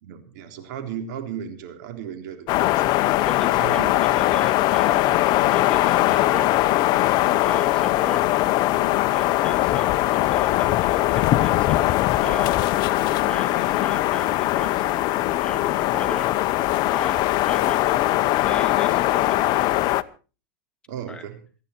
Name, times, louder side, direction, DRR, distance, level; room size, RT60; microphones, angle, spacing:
voice 1, 0.0-2.8 3.6-4.4 13.0-13.1 19.6-19.7 20.9-21.4, right 9 dB, 70° right, 6 dB, 3.7 m, -36 dB
sound 1, 2.5-20.0, left 16 dB, 45° left, 0.8 m, -21 dB
voice 2, 3.0-3.8 4.1-6.5 7.1-8.5 9.1-12.8 13.1-18.0 18.4-19.6 21.1-21.2, left 3 dB, 10° left, 4 dB, 2.5 m, -37 dB
27.5 x 10.0 x 4.4 m, 0.36 s
supercardioid pair, 130°, 10 cm